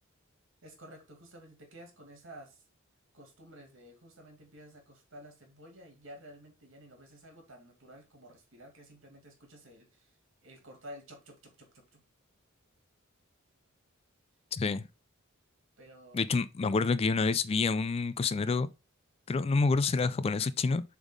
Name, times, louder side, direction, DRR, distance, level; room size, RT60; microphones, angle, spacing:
voice 1, 0.6-2.6 3.1-10.1 10.4-12.0 15.8-16.2, equal, 70° right, 2.3 m, -52 dB
voice 2, 14.5-14.8 16.1-18.7 19.3-20.8, left 4 dB, 30° left, 0.3 m, -28 dB
7.1 x 3.6 x 3.7 m
head